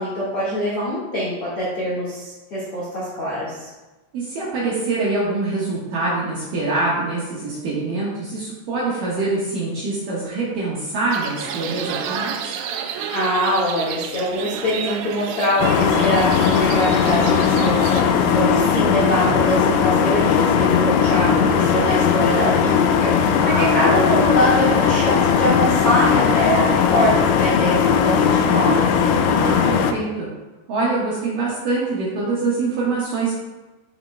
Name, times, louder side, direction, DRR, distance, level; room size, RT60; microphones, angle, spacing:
voice 1, 0.0-3.7 13.1-28.9, equal, 55° left, -8 dB, 1.6 m, -23 dB
voice 2, 4.1-12.6 23.4-23.7 29.3-30.3 30.7-33.3, right 3 dB, 65° right, -7 dB, 2.3 m, -24 dB
sound 1, 11.1-18.0, right 8 dB, 85° right, 2.3 m, -30 dB
sound 2, 15.6-29.9, left 7 dB, 85° left, 2.9 m, -18 dB
12.5 x 5.8 x 2.2 m, 1.1 s
omnidirectional pair, 5.4 m